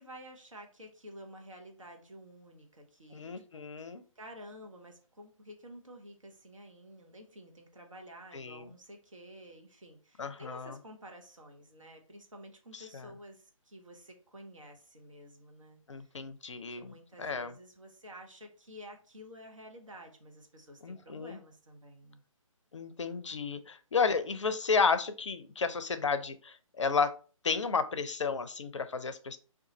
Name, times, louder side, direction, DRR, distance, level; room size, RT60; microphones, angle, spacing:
voice 1, 0.0-3.9 4.2-16.1 16.5-22.2, equal, 65° right, 2 dB, 0.9 m, -51 dB
voice 2, 3.1-4.0 8.3-8.7 10.2-10.8 12.7-13.1 15.9-17.5 20.8-21.4 22.7-27.2 27.4-29.4, left 5 dB, 60° left, 11 dB, 0.4 m, -32 dB
3.6 x 2.3 x 2.9 m, 0.38 s
figure-of-eight pair, 145°, 18 cm